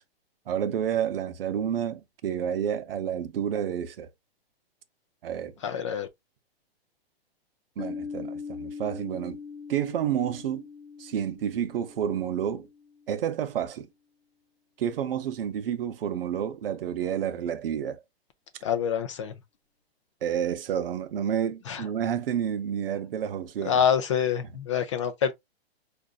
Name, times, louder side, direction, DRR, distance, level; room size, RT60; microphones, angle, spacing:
voice 1, 0.5-4.1 5.2-5.5 7.8-9.4 9.7-10.7 11.0-12.7 13.1-13.9 14.8-18.0 20.2-23.8, right 9 dB, 60° right, 0.7 m, -30 dB
voice 2, 5.6-6.1 18.6-19.3 21.7-21.8 23.7-25.3, left 8 dB, 30° left, 0.4 m, -26 dB
Piano, 7.8-13.2, left 5 dB, 85° left, 0.9 m, -41 dB
5.0 x 2.5 x 2.4 m
hypercardioid pair, 150°, 31 cm